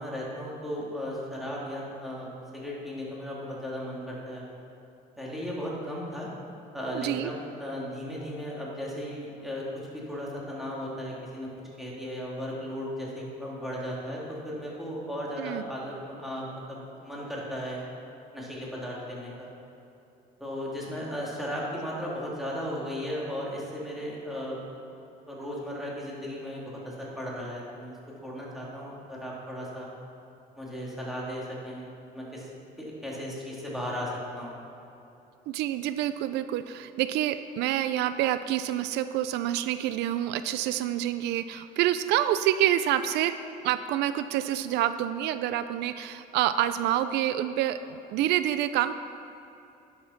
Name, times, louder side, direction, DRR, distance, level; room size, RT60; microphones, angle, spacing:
voice 1, 0.0-4.4 5.2-6.3 6.7-9.7 9.9-11.5 11.8-17.8 18.3-19.5 20.4-24.6 25.3-27.9 28.2-29.9 30.6-31.9 32.1-32.5 32.8-34.6, equal, ahead, -5 dB, 2.9 m, -36 dB
voice 2, 6.9-7.3 15.4-15.6 35.5-43.3 43.6-48.9, right 12 dB, 85° right, 12 dB, 0.4 m, -27 dB
11.0 x 7.2 x 5.8 m, 2.8 s
cardioid pair, 110°, 17 cm